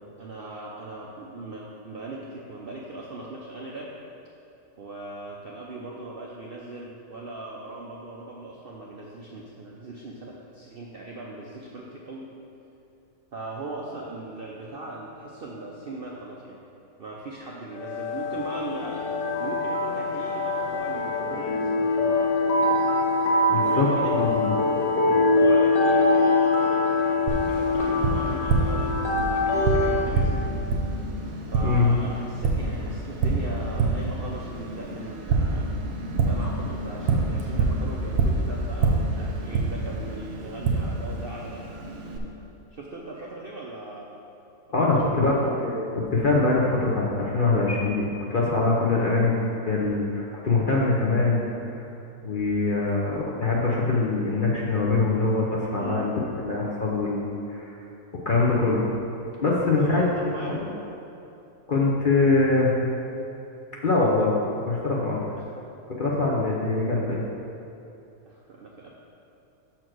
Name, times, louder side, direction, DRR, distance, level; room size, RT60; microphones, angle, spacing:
voice 1, 0.2-3.9 4.8-12.3 13.3-16.6 17.0-19.1 19.4-22.4 23.5-24.4 25.3-30.5 31.5-35.7 36.2-41.6 42.7-44.1 44.8-45.6 55.7-56.1 59.7-60.6 65.4-65.5 66.3-66.5 68.3-68.9, right 2 dB, 60° right, -3 dB, 0.6 m, -38 dB
sound 1, 17.7-30.1, left 2 dB, 90° left, 1.7 m, -23 dB
voice 2, 23.5-23.9 24.1-24.5 31.6-31.9 44.7-49.3 49.7-51.4 52.2-56.2 56.4-57.7 58.3-58.9 59.4-60.0 60.4-60.6 61.7-62.7 63.8-64.3 64.7-65.3 65.9-67.2, left 3 dB, 50° left, -4 dB, 0.6 m, -23 dB
Tap, 27.3-42.2, right 3 dB, 85° right, 1.3 m, -27 dB
6.3 x 4.5 x 6.1 m, 2.7 s
omnidirectional pair, 1.6 m